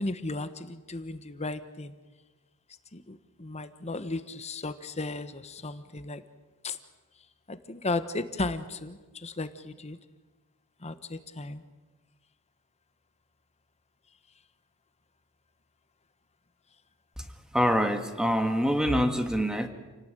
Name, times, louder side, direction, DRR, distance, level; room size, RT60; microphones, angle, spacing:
voice 1, 0.0-1.9 2.9-6.2 6.6-6.8 7.5-10.0 10.8-11.6, left 2 dB, 30° left, 11 dB, 1.3 m, -35 dB
voice 2, 17.5-19.7, equal, 5° right, 7 dB, 2.0 m, -25 dB
29.0 x 18.5 x 9.2 m, 1.2 s
head